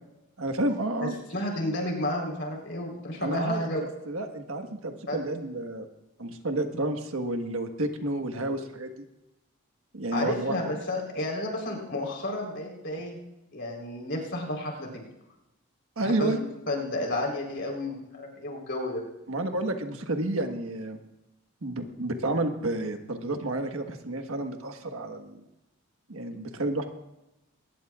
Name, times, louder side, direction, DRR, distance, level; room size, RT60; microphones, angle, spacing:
voice 1, 0.4-1.1 3.2-5.9 6.2-8.9 9.9-10.7 16.0-16.4 19.3-21.0 21.6-25.4 26.1-26.9, right 2 dB, 80° right, 6 dB, 1.5 m, -30 dB
voice 2, 1.0-3.8 5.1-5.2 10.1-13.2 13.5-14.9 16.0-19.0, left 1 dB, 55° left, 0 dB, 4.1 m, -32 dB
22.0 x 19.5 x 2.5 m, 0.94 s
head